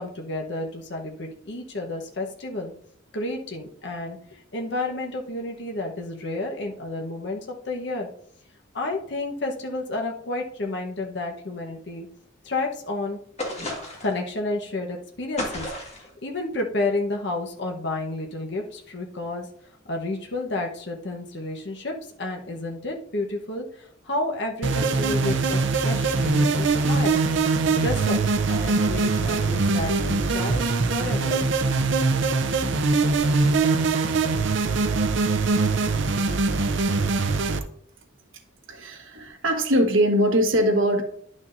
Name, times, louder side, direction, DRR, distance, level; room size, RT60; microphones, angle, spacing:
voice 1, 0.0-2.7 3.1-8.1 8.7-12.1 12.4-13.2 14.0-19.5 19.8-27.2 27.5-28.2 28.5-31.4, left 2 dB, 60° left, 1 dB, 1.0 m, -31 dB
sound 1, 13.4-14.2 15.4-16.1, left 1 dB, 35° left, 1.6 m, -32 dB
sound 2, 24.6-37.6, right 3 dB, 65° right, 0.6 m, -22 dB
voice 2, 38.7-41.0, equal, 80° right, 3 dB, 1.3 m, -21 dB
10.5 x 6.3 x 2.6 m, 0.64 s
head